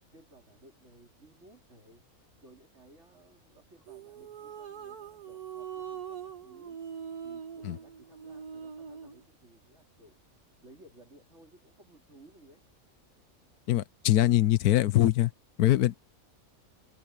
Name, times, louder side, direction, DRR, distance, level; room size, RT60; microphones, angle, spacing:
voice 1, 0.1-2.0 2.4-6.8 7.2-10.2 10.6-12.6, right 1 dB, 50° right, 4.6 m, -58 dB
sound 1, 3.9-9.2, right 8 dB, 80° right, 2.2 m, -42 dB
voice 2, 13.7-15.3 15.6-16.0, left 14 dB, 85° left, 1.2 m, -23 dB
omnidirectional pair, 1.6 m